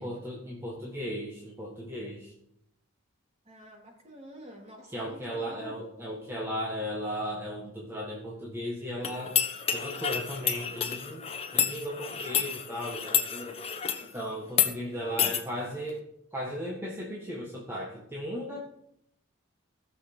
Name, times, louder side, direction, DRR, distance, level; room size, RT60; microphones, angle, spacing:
voice 1, 0.0-2.3 4.9-9.4 9.7-11.2 11.5-13.6 14.0-16.0 16.3-18.6, equal, 10° right, -4 dB, 1.7 m, -36 dB
voice 2, 3.4-5.8 14.9-15.3, equal, 30° right, -1 dB, 3.2 m, -48 dB
sound 1, 9.0-14.1 14.5-14.7 15.2-15.4, left 8 dB, 30° left, 1.1 m, -29 dB
16.5 x 6.9 x 6.0 m, 0.77 s
head